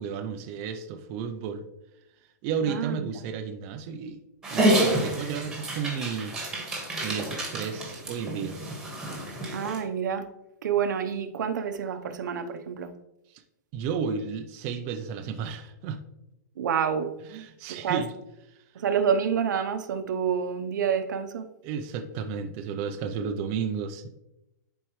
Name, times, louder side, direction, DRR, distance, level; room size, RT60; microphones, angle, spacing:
voice 1, 0.0-1.6 2.4-4.2 4.5-6.4 7.0-8.6 13.3-13.4 13.7-16.0 17.3-18.1 21.6-24.1, right 6 dB, 25° right, 5 dB, 0.4 m, -33 dB
voice 2, 2.7-3.1 9.5-10.3 10.6-12.9 16.6-17.1 17.7-18.0 18.7-21.5, right 7 dB, 80° right, 8 dB, 0.8 m, -28 dB
Dog, 4.4-9.8, right 1 dB, 5° right, 1.4 m, -28 dB
11.5 x 4.5 x 3.1 m, 0.90 s
supercardioid pair, 170°, 10 cm